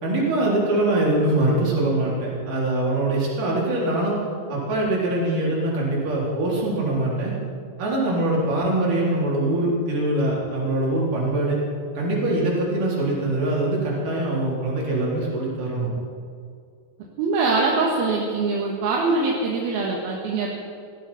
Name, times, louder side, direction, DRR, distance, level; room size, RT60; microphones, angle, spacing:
voice 1, 0.0-4.2 4.5-7.3 7.8-11.6 12.0-15.9, right 1 dB, 55° right, -5 dB, 5.4 m, -23 dB
voice 2, 17.2-20.5, right 3 dB, 75° right, -2 dB, 3.4 m, -23 dB
18.0 x 13.5 x 5.8 m, 2.3 s
omnidirectional pair, 4.4 m